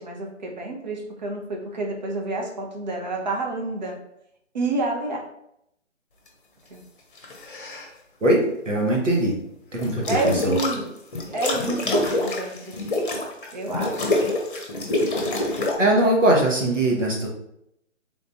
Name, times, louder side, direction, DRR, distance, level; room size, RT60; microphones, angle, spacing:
voice 1, 0.0-4.0 4.5-5.2 6.7-6.8 10.1-10.9 11.3-12.7 13.5-14.1, right 2 dB, 35° right, 1 dB, 0.7 m, -28 dB
sound 1, 7.2-7.9 9.8-10.8 11.1-15.8, left 2 dB, 45° left, 0.8 m, -26 dB
voice 2, 8.2-9.3 9.7-10.6 15.8-17.3, right 1 dB, 75° right, -1 dB, 1.3 m, -21 dB
3.8 x 2.5 x 3.5 m, 0.78 s
figure-of-eight pair, 140°, 37 cm